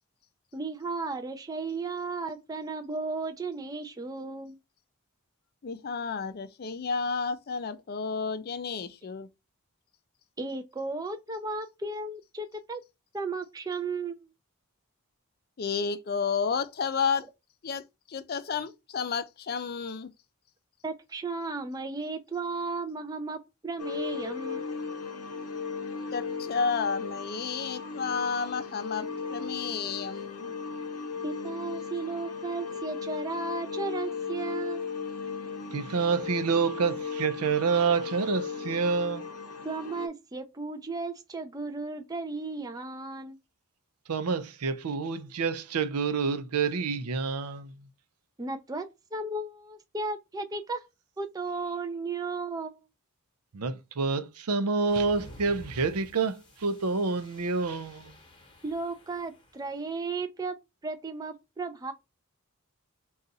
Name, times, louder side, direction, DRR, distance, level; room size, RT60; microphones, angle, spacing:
voice 1, 0.5-4.6 10.4-12.8 13.1-14.3 20.8-24.7 31.2-34.9 39.6-43.4 48.4-50.8 51.2-52.8 58.6-60.6 60.8-61.9, right 3 dB, 15° right, 0.4 m, -35 dB
voice 2, 5.6-9.3 15.6-17.3 17.6-20.1 26.1-30.5, left 5 dB, 45° left, 0.4 m, -31 dB
sound 1, 23.8-40.1, left 5 dB, 90° left, 0.7 m, -36 dB
voice 3, 35.7-39.2 44.1-47.7 53.5-58.1, right 4 dB, 90° right, 0.6 m, -28 dB
sound 2, 54.9-59.8, left 1 dB, 20° left, 1.0 m, -51 dB
3.8 x 2.4 x 3.9 m
head